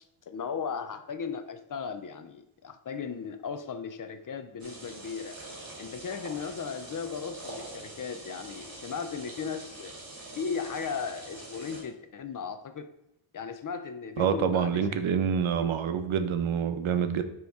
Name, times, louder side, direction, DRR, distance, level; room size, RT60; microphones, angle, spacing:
voice 1, 0.0-5.4 5.8-10.0 10.4-12.9 13.3-14.9 15.6-15.7, left 6 dB, 45° left, 10 dB, 0.4 m, -36 dB
sound 1, 4.6-11.8, right 2 dB, 45° right, 2.1 m, -44 dB
voice 2, 14.2-17.2, right 7 dB, 75° right, 9 dB, 0.7 m, -27 dB
9.2 x 3.1 x 3.5 m, 0.83 s
wide cardioid pair, 140°, 48 cm